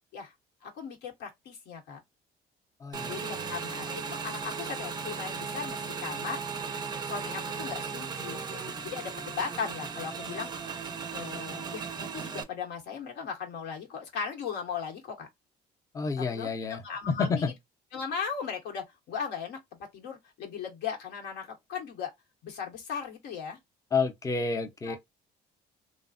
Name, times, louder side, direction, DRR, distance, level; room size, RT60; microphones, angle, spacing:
voice 1, 0.6-2.0 3.1-6.4 7.0-10.5 11.1-15.3 16.2-17.5 17.9-22.1 22.4-23.6 24.9-25.0, left 6 dB, 80° left, 1.0 m, -37 dB
voice 2, 2.8-3.5 15.9-16.8 17.1-17.5 23.9-25.0, left 4 dB, 20° left, 0.6 m, -30 dB
Motorcycle / Engine, 2.9-12.4, right 5 dB, 25° right, 0.5 m, -36 dB
3.1 x 2.0 x 2.5 m
cardioid pair, 110°, 17 cm